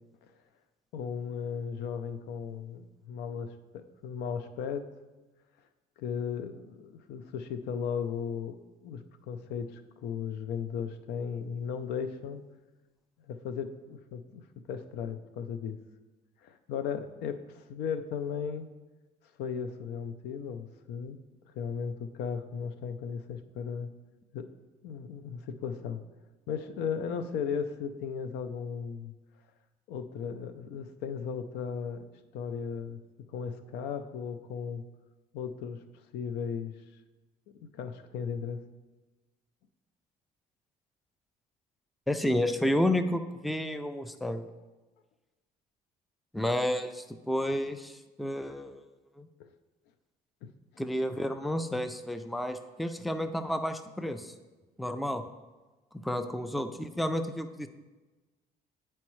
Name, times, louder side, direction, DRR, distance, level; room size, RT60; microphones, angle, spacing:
voice 1, 0.9-4.9 6.0-12.4 13.3-15.8 16.4-18.7 19.4-21.2 21.5-23.9 24.3-24.5 24.8-26.0 26.5-29.1 29.9-32.1 32.3-33.0 33.3-34.8 35.3-35.8 36.1-36.7 37.6-38.6 49.4-49.5 50.4-50.5, left 7 dB, 85° left, 10 dB, 0.5 m, -36 dB
voice 2, 42.1-44.5 46.3-48.8 49.2-49.3 50.8-54.3 54.8-55.2 55.9-57.7, left 1 dB, ahead, 9 dB, 0.4 m, -31 dB
9.6 x 4.4 x 3.1 m, 1.2 s
cardioid pair, 110°, 17 cm